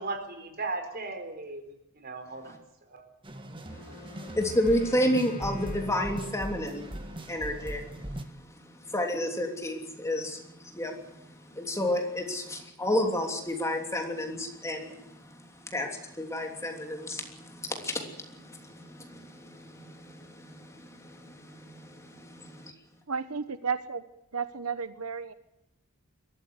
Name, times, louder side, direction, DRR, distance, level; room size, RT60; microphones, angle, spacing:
voice 1, 0.0-2.6 2.9-3.0, right 3 dB, 45° right, 7 dB, 3.9 m, -37 dB
sound 1, 3.2-8.2, right 1 dB, 25° right, 1.8 m, -39 dB
Wind instrument woodwind instrument, 3.6-6.9, left 4 dB, 40° left, 4.7 m, -48 dB
voice 2, 3.7-8.1 8.8-21.9, left 1 dB, 15° left, 2 dB, 3.1 m, -31 dB
voice 3, 23.1-24.0 24.3-25.3, right 5 dB, 80° right, 12 dB, 1.0 m, -33 dB
22.5 x 14.0 x 9.6 m, 0.88 s
head